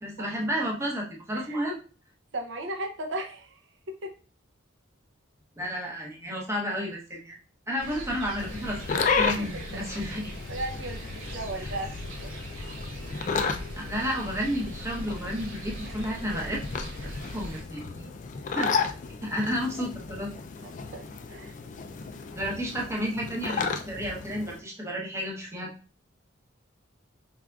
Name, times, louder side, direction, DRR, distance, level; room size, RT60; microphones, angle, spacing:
voice 1, 0.0-1.8 5.6-7.4 7.7-10.3 11.6-11.8 13.7-16.6 17.3-18.1 18.6-18.7 19.2-20.3 22.3-25.7, equal, 15° right, -2 dB, 0.8 m, -31 dB
voice 2, 2.3-3.6 3.9-4.1 9.4-9.5 9.7-10.2 10.5-11.9 12.2-12.3 15.8-15.9 20.6-21.0 21.3-21.5, right 1 dB, 65° right, 3 dB, 0.6 m, -36 dB
sound 1, 7.8-17.6, right 1 dB, 90° right, 2.2 m, -41 dB
sound 2, 8.4-24.6, left 5 dB, 40° left, 0.3 m, -33 dB
4.9 x 3.4 x 2.3 m, 0.36 s
head